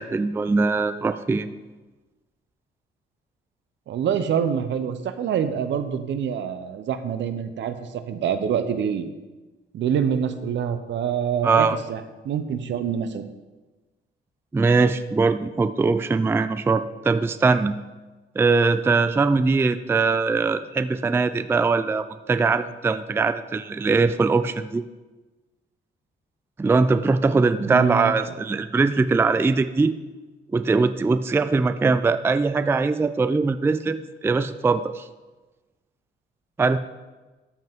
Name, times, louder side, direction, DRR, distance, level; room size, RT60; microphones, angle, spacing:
voice 1, 0.0-1.5 11.4-11.8 14.5-17.7 18.4-24.8 26.6-29.9 30.5-34.0 34.2-35.1 36.6-36.8, right 4 dB, 10° right, 11 dB, 0.3 m, -21 dB
voice 2, 3.9-9.1 9.7-13.3 27.7-28.1, right 8 dB, 65° right, 10 dB, 0.8 m, -26 dB
13.0 x 5.5 x 3.6 m, 1.2 s
cardioid pair, 90°, 20 cm